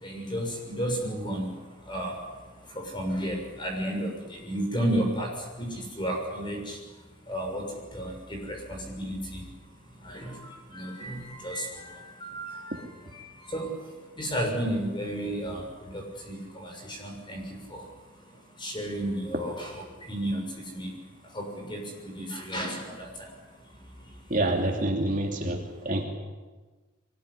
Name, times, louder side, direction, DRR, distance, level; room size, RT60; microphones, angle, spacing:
voice 1, 0.0-24.4 25.7-25.9, right 1 dB, 20° left, 2 dB, 6.5 m, -34 dB
voice 2, 24.3-25.6 25.8-26.0, right 1 dB, 35° right, 1 dB, 2.8 m, -26 dB
23.0 x 20.0 x 9.9 m, 1.3 s
head